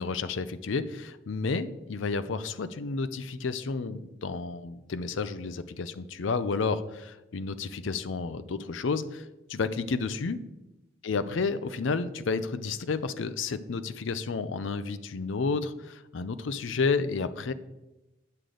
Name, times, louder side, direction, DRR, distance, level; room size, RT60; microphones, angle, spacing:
voice 1, 0.0-10.4 11.0-17.5, left 4 dB, 70° left, 13 dB, 0.5 m, -31 dB
8.6 x 6.4 x 3.8 m, 0.99 s
head